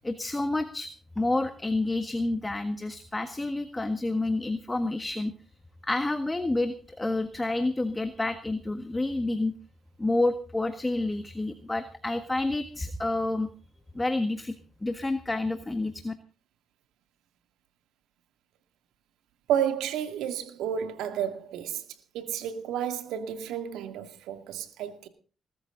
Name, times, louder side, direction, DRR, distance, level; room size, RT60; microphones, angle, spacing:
voice 1, 0.0-0.9 1.1-5.3 5.8-9.5 10.0-13.5 13.9-14.5 14.8-16.1, left 2 dB, 15° left, 1.5 m, -29 dB
voice 2, 19.5-21.8 22.1-25.1, right 9 dB, 90° right, 2.3 m, -31 dB
20.5 x 13.5 x 3.9 m
cardioid pair, 90°, 0 cm